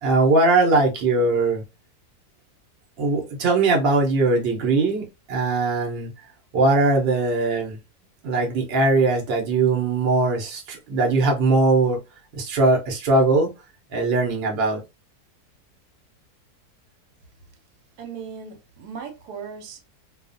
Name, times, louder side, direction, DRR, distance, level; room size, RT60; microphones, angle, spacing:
voice 1, 0.0-1.6 3.0-6.1 6.5-7.8 8.2-12.0 12.3-13.5 13.9-14.8, right 3 dB, 50° right, 0.9 m, -20 dB
voice 2, 18.0-19.8, right 6 dB, 85° right, 1.2 m, -37 dB
2.4 x 2.4 x 2.5 m
omnidirectional pair, 1.7 m